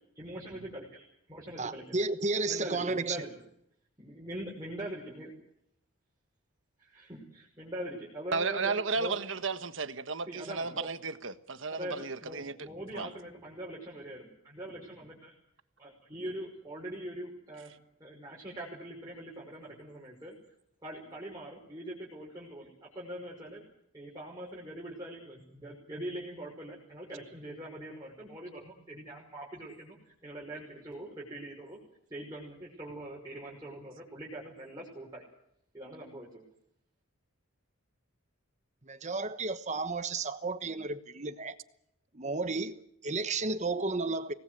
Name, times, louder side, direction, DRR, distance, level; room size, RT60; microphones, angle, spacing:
voice 1, 0.1-2.0 2.5-3.3 4.0-5.3 6.8-9.2 10.3-10.9 11.7-15.3 15.8-17.7 18.0-20.3 20.8-23.6 23.9-31.8 32.1-35.2 35.7-36.4, right 1 dB, 15° right, 5.8 m, -43 dB
voice 2, 1.6-3.2 38.8-41.6 42.1-44.3, right 3 dB, 35° right, 1.2 m, -33 dB
voice 3, 8.3-12.7 12.9-13.1, right 4 dB, 60° right, 1.3 m, -33 dB
25.5 x 19.0 x 8.0 m
head